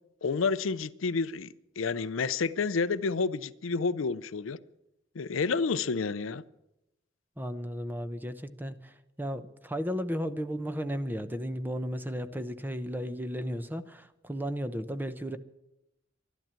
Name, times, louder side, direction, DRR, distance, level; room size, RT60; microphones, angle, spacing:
voice 1, 0.2-1.5 1.8-4.6 5.2-6.4, left 4 dB, 80° left, 0.6 m, -29 dB
voice 2, 7.4-15.4, equal, 10° right, 0.7 m, -34 dB
12.0 x 12.0 x 8.8 m
head